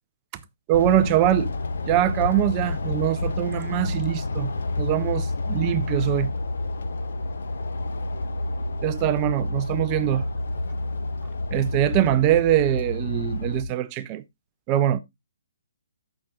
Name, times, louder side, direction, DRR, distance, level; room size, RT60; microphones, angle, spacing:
sound 1, 0.7-13.6, left 2 dB, 70° left, 1.2 m, -29 dB
voice 1, 0.7-1.5 1.8-4.5 4.8-6.3 8.8-10.2 11.5-14.2 14.7-15.0, right 13 dB, 20° right, 0.4 m, -23 dB
15.0 x 5.9 x 2.4 m
hypercardioid pair, 170°, 0 cm